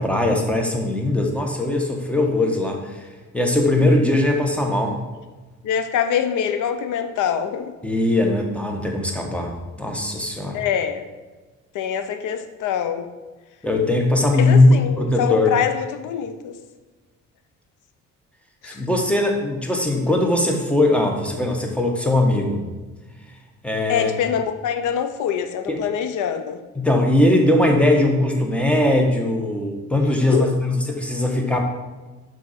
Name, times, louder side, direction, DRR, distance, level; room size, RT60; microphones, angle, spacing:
voice 1, 0.0-3.0 3.3-5.0 7.8-10.6 13.6-14.7 15.0-15.5 18.6-22.6 23.6-24.1 25.7-25.8 26.7-31.6, left 2 dB, 5° left, 1.3 m, -20 dB
voice 2, 5.6-7.8 10.5-11.1 11.7-13.1 14.4-16.6 18.6-18.8 23.9-26.6 30.3-30.5, left 8 dB, 80° left, 0.7 m, -24 dB
6.1 x 4.0 x 5.7 m
cardioid pair, 90°, 30 cm